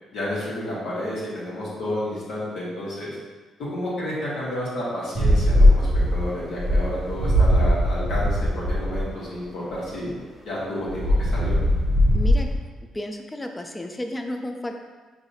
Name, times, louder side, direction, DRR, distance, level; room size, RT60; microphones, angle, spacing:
voice 1, 0.1-3.2 3.6-10.1 10.4-11.6, left 1 dB, 70° left, -8 dB, 1.4 m, -30 dB
sound 1, 5.1-9.0 10.9-12.5, equal, 20° right, 0.9 m, -20 dB
voice 2, 12.1-12.5 12.9-14.8, left 1 dB, 15° left, 4 dB, 0.4 m, -32 dB
4.8 x 2.7 x 2.8 m, 1.3 s
cardioid pair, 90°, 0 cm